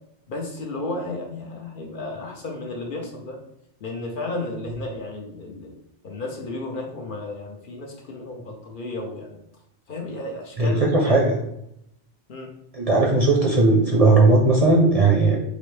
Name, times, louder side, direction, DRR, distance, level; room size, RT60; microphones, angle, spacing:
voice 1, 0.3-3.4 3.8-5.7 6.0-9.4 9.9-11.4 12.3-12.5, left 2 dB, 55° left, 1 dB, 0.7 m, -33 dB
voice 2, 10.6-11.4 12.7-15.4, right 3 dB, 45° right, -1 dB, 0.6 m, -17 dB
4.0 x 2.6 x 3.2 m, 0.78 s
omnidirectional pair, 1.1 m